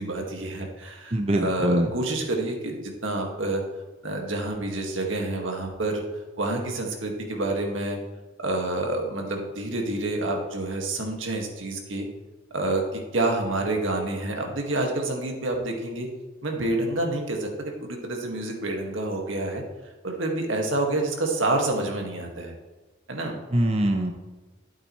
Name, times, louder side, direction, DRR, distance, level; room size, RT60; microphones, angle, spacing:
voice 1, 0.0-3.6 4.0-6.0 6.4-8.0 8.4-12.1 12.5-16.1 16.4-19.6 20.0-22.5 23.1-23.4, right 2 dB, 85° right, 1 dB, 1.9 m, -28 dB
voice 2, 1.1-1.9 23.5-24.1, right 1 dB, 30° right, 3 dB, 0.7 m, -23 dB
11.5 x 8.7 x 3.2 m, 1.2 s
head